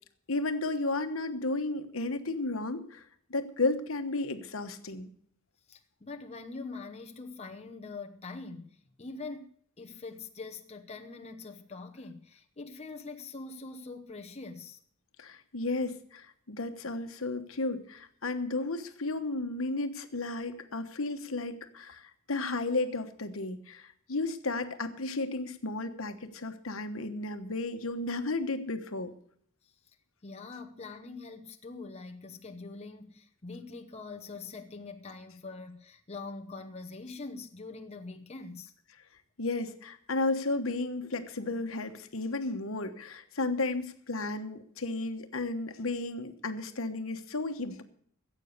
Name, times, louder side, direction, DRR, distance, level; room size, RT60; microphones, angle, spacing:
voice 1, 0.3-3.0 3.3-5.1 15.2-29.1 39.4-47.8, left 2 dB, 70° left, 1.2 m, -33 dB
voice 2, 5.7-14.8 29.6-30.0 30.2-38.7, left 3 dB, 30° left, 0.9 m, -44 dB
15.0 x 8.4 x 6.7 m
head